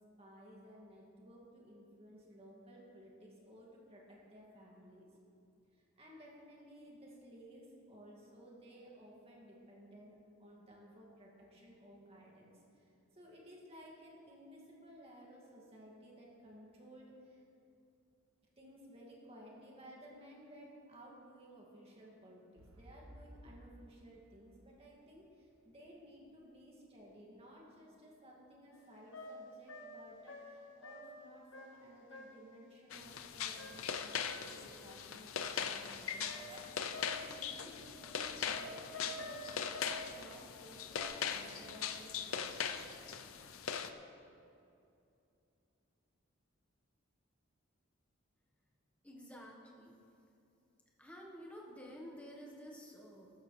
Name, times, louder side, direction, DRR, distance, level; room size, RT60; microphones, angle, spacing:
voice 1, 0.2-5.1 5.7-17.4 18.6-43.0, equal, 30° right, -3 dB, 2.2 m, -57 dB
sound 1, 22.6-26.4 27.0-27.1, equal, 85° right, 1.4 m, -57 dB
sound 2, 28.7-28.8 29.1-31.2 31.5-32.5 33.6-34.6 36.2-37.4 38.5-40.1 40.9-41.0, left 1 dB, 60° left, 1.3 m, -49 dB
sound 3, 32.9-43.9, left 7 dB, 80° left, 0.6 m, -40 dB
voice 2, 49.0-49.9 51.0-53.3, equal, 5° left, -2 dB, 1.4 m, -51 dB
13.5 x 13.5 x 3.3 m, 2.6 s
head